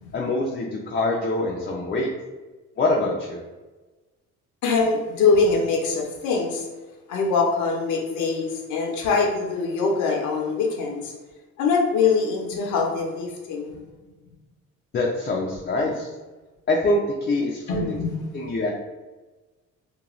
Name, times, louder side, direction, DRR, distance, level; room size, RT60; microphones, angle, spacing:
voice 1, 0.1-2.1 2.8-3.4 14.9-16.1 16.7-18.0 18.3-18.7, left 2 dB, 35° left, -2 dB, 0.5 m, -24 dB
voice 2, 4.6-6.6 7.1-11.1 11.6-13.7 17.7-18.2, left 4 dB, 80° left, 0 dB, 0.7 m, -23 dB
2.4 x 2.2 x 3.0 m, 1.2 s
supercardioid pair, 70°, 30 cm